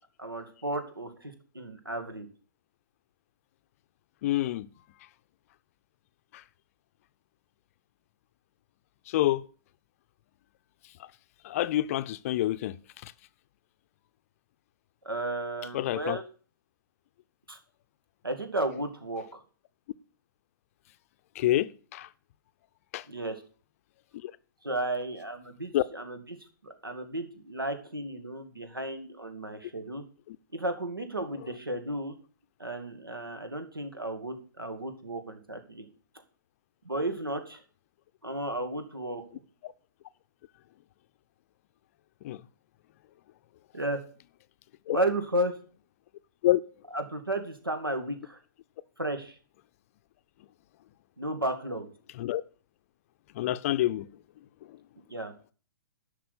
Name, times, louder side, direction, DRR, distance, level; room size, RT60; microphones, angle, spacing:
voice 1, 0.2-2.3 15.0-16.2 17.5-17.6 18.2-19.4 23.1-23.4 24.6-26.4 26.6-30.0 30.5-32.1 32.6-35.9 36.8-37.6 38.2-39.2 43.7-44.0 44.9-45.5 46.9-48.4 49.0-49.4 51.2-51.9 55.1-55.3, right 1 dB, 90° right, 2.2 m, -33 dB
voice 2, 4.2-4.7 9.1-9.4 11.4-12.7 15.7-16.2 21.4-22.1 22.9-23.0 25.7-25.8 42.2-42.4 44.9-45.0 46.4-46.6 52.2-52.4 53.4-54.1, left 14 dB, 40° left, 0.6 m, -27 dB
11.0 x 6.1 x 6.6 m
figure-of-eight pair, 120°, 11 cm